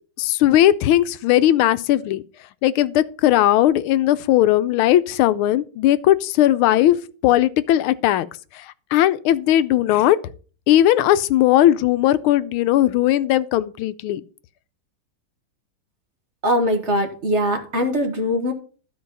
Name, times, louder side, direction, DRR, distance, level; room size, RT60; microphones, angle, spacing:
voice 1, 0.2-2.2 2.6-7.0 7.2-8.3 8.5-8.7 8.9-10.2 10.7-14.2, left 13 dB, 90° left, 1.5 m, -17 dB
voice 2, 16.4-18.5, equal, 35° right, 1.6 m, -21 dB
12.5 x 4.7 x 5.4 m
omnidirectional pair, 2.3 m